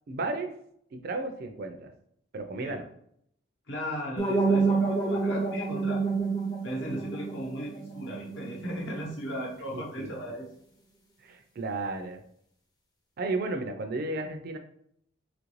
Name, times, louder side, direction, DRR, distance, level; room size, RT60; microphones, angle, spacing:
voice 1, 0.1-0.5 0.9-1.9 2.3-2.9 10.0-10.1 11.2-12.2 13.2-14.6, right 2 dB, 45° right, 6 dB, 0.3 m, -33 dB
voice 2, 3.7-6.0 6.6-10.5, equal, 65° left, -2 dB, 0.9 m, -36 dB
sound 1, 4.2-9.1, right 4 dB, 20° left, 0.5 m, -29 dB
3.0 x 2.5 x 3.1 m, 0.69 s
head